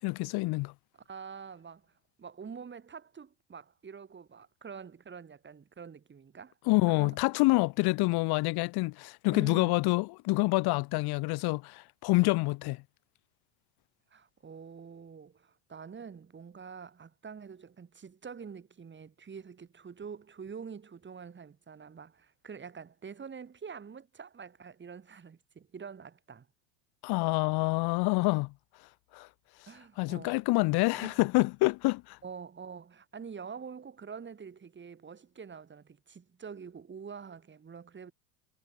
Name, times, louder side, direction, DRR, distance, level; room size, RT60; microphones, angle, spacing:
voice 1, 0.0-0.7 6.7-12.8 27.0-28.5 29.1-29.3 30.0-32.2, left 23 dB, 55° left, 1.9 m, -27 dB
voice 2, 1.0-1.9 2.2-6.5 6.9-7.2 9.3-9.8 14.1-26.5 29.7-30.4 31.0-31.2 32.2-38.1, right 6 dB, 25° right, 7.7 m, -46 dB
supercardioid pair, 100°, 45 cm